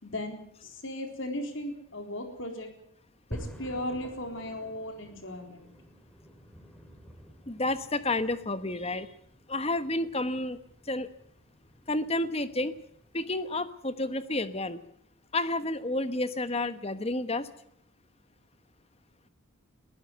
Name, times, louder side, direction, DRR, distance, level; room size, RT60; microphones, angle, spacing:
voice 1, 0.0-2.7 3.3-5.7, left 1 dB, 60° left, 5 dB, 4.0 m, -37 dB
sound 1, 3.3-13.6, equal, 5° left, 3.2 m, -49 dB
voice 2, 7.5-9.1 9.5-10.6 10.9-11.1 11.9-12.7 13.1-14.8 15.3-17.5, left 2 dB, 30° left, 12 dB, 1.1 m, -30 dB
21.5 x 15.0 x 8.1 m, 0.70 s
head